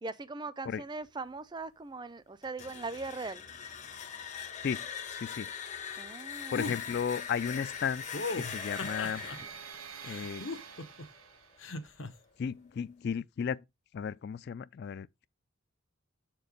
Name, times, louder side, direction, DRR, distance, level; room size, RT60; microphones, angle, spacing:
voice 1, 0.0-3.4 6.0-6.7 9.3-9.5, right 3 dB, 20° right, 0.4 m, -40 dB
sound 1, 2.4-11.2, left 8 dB, 35° left, 0.7 m, -42 dB
voice 2, 4.6-5.5 6.5-8.0 8.3-9.2 10.0-10.4 12.4-13.6 13.9-15.3, left 7 dB, 50° left, 0.3 m, -34 dB
sound 2, 6.5-6.8 8.1-9.4 10.0-11.0 11.6-12.1, left 3 dB, 65° left, 1.0 m, -37 dB
sound 3, 6.8-11.8, right 7 dB, 80° right, 1.3 m, -48 dB
7.1 x 4.5 x 4.9 m
head